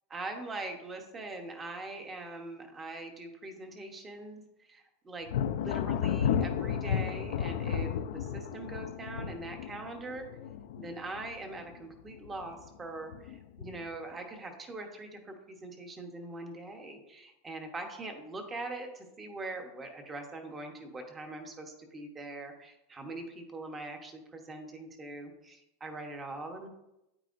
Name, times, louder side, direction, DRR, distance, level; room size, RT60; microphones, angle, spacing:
voice 1, 0.1-10.3 10.8-26.7, right 2 dB, 15° right, 4 dB, 1.0 m, -42 dB
Thunder, 5.3-11.8 12.1-12.7 13.1-14.0, left 8 dB, 70° left, 0.5 m, -33 dB
9.5 x 8.9 x 2.5 m, 0.89 s
supercardioid pair, 175°, 0 cm